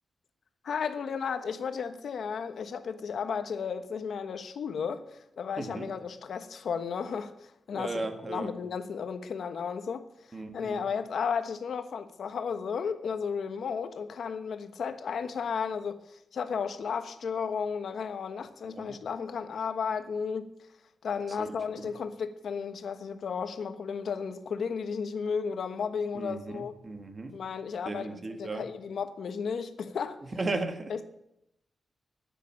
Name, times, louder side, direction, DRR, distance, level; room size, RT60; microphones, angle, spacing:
voice 1, 0.6-20.5 21.0-26.7 27.3-30.2 30.9-31.0, left 6 dB, 75° left, 1.2 m, -34 dB
voice 2, 5.6-5.9 7.7-8.6 10.3-10.9 18.6-19.0 21.3-21.9 26.1-27.4 27.9-28.7 30.2-30.9, right 3 dB, 30° right, 1.7 m, -36 dB
12.0 x 9.4 x 8.7 m
wide cardioid pair, 120°, 0 cm